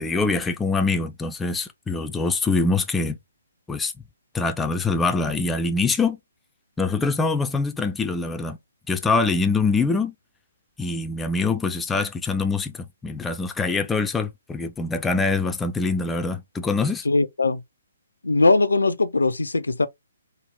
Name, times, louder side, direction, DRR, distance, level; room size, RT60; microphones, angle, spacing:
voice 1, 0.0-3.2 3.7-3.9 4.3-6.2 6.8-8.6 8.9-10.1 10.8-17.1, left 3 dB, 10° left, 0.4 m, -24 dB
voice 2, 17.1-17.6 18.2-19.9, left 3 dB, 75° left, 0.5 m, -20 dB
3.7 x 2.0 x 3.4 m
figure-of-eight pair, 130°, 0 cm